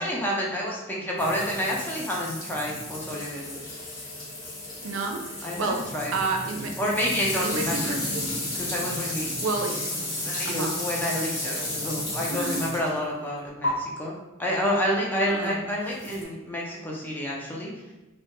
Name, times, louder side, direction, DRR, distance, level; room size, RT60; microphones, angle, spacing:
voice 1, 0.0-3.7 5.4-6.1 6.8-8.0 8.6-9.3 10.2-14.1 14.4-17.9, equal, 10° left, -3 dB, 0.4 m, -29 dB
sound 1, 1.2-13.0 13.6-13.7 16.0-16.2, left 1 dB, 85° left, 0.8 m, -33 dB
voice 2, 4.8-6.8 7.4-8.4 9.4-10.1 10.4-10.9 12.3-12.9 15.3-15.7, right 3 dB, 90° right, 3 dB, 0.4 m, -31 dB
2.1 x 2.1 x 2.9 m, 1.1 s
head